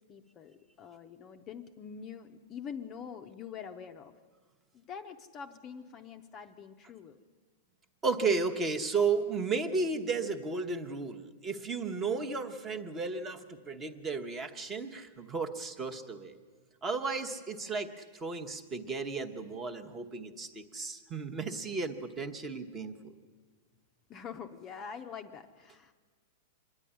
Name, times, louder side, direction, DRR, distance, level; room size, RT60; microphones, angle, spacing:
voice 1, 0.0-4.1 4.7-7.2 24.1-25.9, left 7 dB, 20° left, 6 dB, 0.7 m, -45 dB
voice 2, 8.0-16.4 16.8-23.1, right 4 dB, 15° right, 6 dB, 1.0 m, -34 dB
26.0 x 11.0 x 10.0 m, 1.5 s
supercardioid pair, 175°, 0 cm